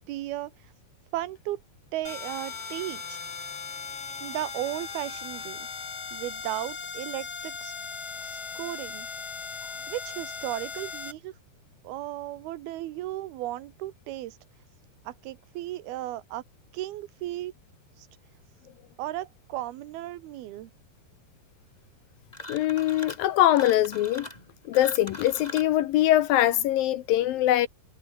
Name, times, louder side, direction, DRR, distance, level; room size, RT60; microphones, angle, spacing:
voice 1, 0.1-0.5 1.1-1.6 1.9-3.2 4.2-5.6 6.1-7.7 8.2-9.1 9.9-11.3 11.8-14.4 15.1-16.4 16.7-17.5 18.0-18.1 19.0-20.7, right 15 dB, 75° right, 2.9 m, -35 dB
sound 1, 2.0-11.1, left 5 dB, 40° left, 4.3 m, -38 dB
sound 2, 22.3-23.3 23.5-25.8, left 1 dB, 10° left, 5.0 m, -41 dB
voice 2, 22.5-24.3 24.7-27.7, left 13 dB, 75° left, 2.4 m, -22 dB
omnidirectional pair, 4.7 m